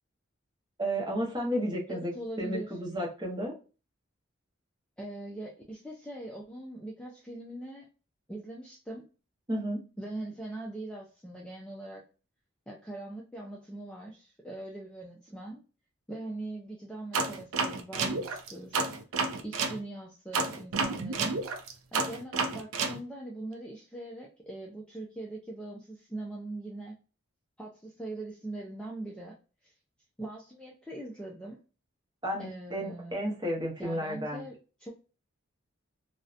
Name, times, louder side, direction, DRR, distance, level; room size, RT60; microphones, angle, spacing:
voice 1, 0.8-2.1 2.4-3.5 9.5-9.8 32.2-34.4, equal, 20° right, -2 dB, 0.7 m, -32 dB
voice 2, 1.9-2.7 5.0-7.9 8.3-9.1 10.0-12.0 12.7-15.6 16.1-18.8 19.4-21.4 21.9-27.0 27.6-29.3 29.6-29.7 30.2-31.6 32.4-33.2 33.8-34.9, right 2 dB, 5° left, -2 dB, 0.3 m, -41 dB
sound 1, 17.1-19.8 20.3-23.0, right 4 dB, 85° right, 0.4 m, -30 dB
2.7 x 2.0 x 2.3 m, 0.34 s
head